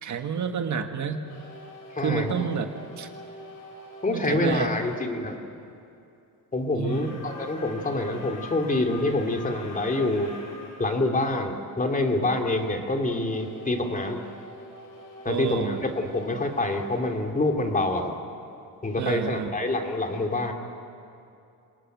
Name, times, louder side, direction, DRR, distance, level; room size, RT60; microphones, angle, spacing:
voice 1, 0.0-1.2 2.0-2.7 3.0-3.1 4.1-4.7 6.7-7.1 15.3-15.8 19.0-19.5, right 7 dB, 55° right, 6 dB, 1.7 m, -29 dB
sound 1, 1.2-5.1 6.8-10.9 13.2-18.1, left 2 dB, 65° left, 5.8 m, -45 dB
voice 2, 1.9-2.4 4.0-5.4 6.5-10.3 10.8-14.2 15.2-18.1 18.8-20.5, left 2 dB, 25° left, 3 dB, 2.7 m, -26 dB
26.5 x 20.5 x 9.3 m, 2.6 s
cardioid pair, 115°, 34 cm